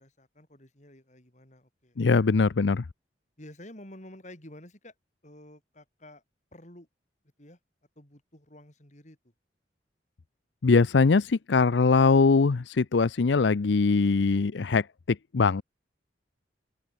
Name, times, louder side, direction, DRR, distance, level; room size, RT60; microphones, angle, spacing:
voice 1, 0.0-2.0 3.4-4.9 5.2-6.2 6.5-6.9 7.4-7.6 8.0-9.2, left 1 dB, 40° left, 5.7 m, -50 dB
voice 2, 2.0-2.8 10.6-15.6, left 4 dB, 75° left, 0.6 m, -22 dB
open air
head